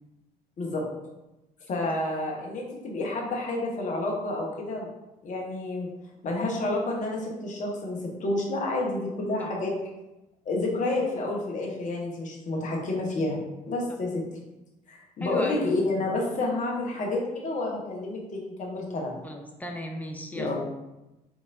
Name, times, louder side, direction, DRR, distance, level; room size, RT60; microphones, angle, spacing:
voice 1, 1.7-4.9 5.2-5.9 6.2-9.7 10.4-13.4 13.7-14.2 14.9-19.3 20.3-20.6, left 2 dB, 40° left, -2 dB, 1.0 m, -29 dB
voice 2, 15.2-15.7 19.2-20.6, left 1 dB, 10° left, 2 dB, 0.6 m, -35 dB
3.6 x 3.4 x 2.6 m, 0.98 s
figure-of-eight pair, 55°, 20 cm